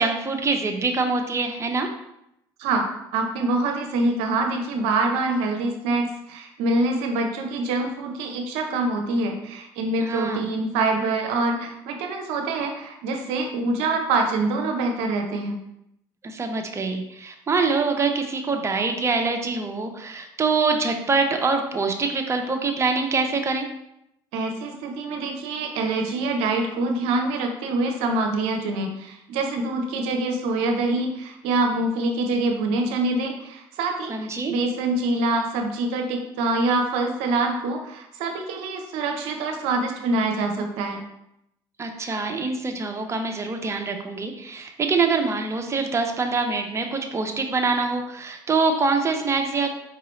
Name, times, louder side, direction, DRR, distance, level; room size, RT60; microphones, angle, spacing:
voice 1, 0.0-1.9 10.0-10.5 16.2-23.7 34.1-34.5 41.8-49.7, right 4 dB, 25° right, 3 dB, 0.6 m, -24 dB
voice 2, 3.1-15.6 24.3-34.1 34.5-41.0, right 2 dB, 75° right, 3 dB, 0.6 m, -25 dB
4.6 x 2.9 x 3.1 m, 0.81 s
supercardioid pair, 75°, 11 cm